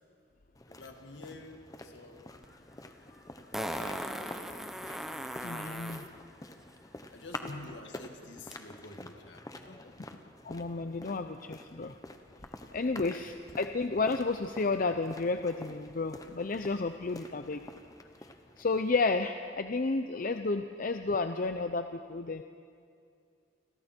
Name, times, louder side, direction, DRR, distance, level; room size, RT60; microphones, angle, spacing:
sound 1, 0.5-19.1, left 2 dB, 20° left, 1.1 m, -48 dB
voice 1, 0.7-2.3 3.5-4.5 7.1-10.0 11.0-11.2, left 2 dB, 70° left, 4 dB, 2.1 m, -49 dB
Fart, 2.4-2.5 3.5-6.1 8.5-8.6, equal, ahead, 0.9 m, -38 dB
voice 2, 5.4-6.1 10.4-11.9 12.7-17.6 18.6-22.4, left 3 dB, 50° left, 8 dB, 0.6 m, -31 dB
29.0 x 22.0 x 4.5 m, 2.4 s
head